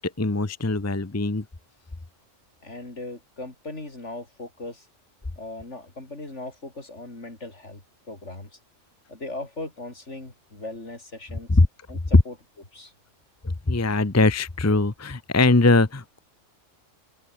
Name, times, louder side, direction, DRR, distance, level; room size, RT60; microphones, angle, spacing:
voice 1, 0.0-1.4 11.5-11.7 12.1-12.2 13.4-16.2, left 2 dB, 15° left, 0.8 m, -21 dB
voice 2, 2.6-4.9 5.4-7.8 8.1-8.5 9.1-11.5 11.9-12.3 12.7-12.9, left 2 dB, 65° left, 5.1 m, -38 dB
open air
omnidirectional pair, 1.3 m